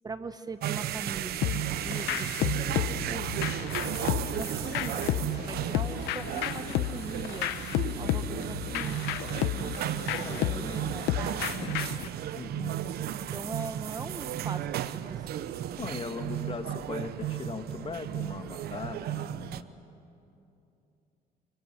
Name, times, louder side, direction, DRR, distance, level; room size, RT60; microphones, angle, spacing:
voice 1, 0.0-1.5 1.8-3.4 4.3-9.2 9.5-11.7 13.2-15.8, right 4 dB, 25° right, 10 dB, 1.0 m, -41 dB
sound 1, 0.6-19.6, right 12 dB, 70° right, 0.9 m, -34 dB
sound 2, 1.4-12.1, left 13 dB, 90° left, 1.0 m, -32 dB
voice 2, 10.2-10.7 11.3-11.8 12.3-12.8 15.8-19.7, left 4 dB, 30° left, 6 dB, 2.3 m, -39 dB
29.0 x 25.0 x 7.9 m, 2.8 s
cardioid pair, 110°, 17 cm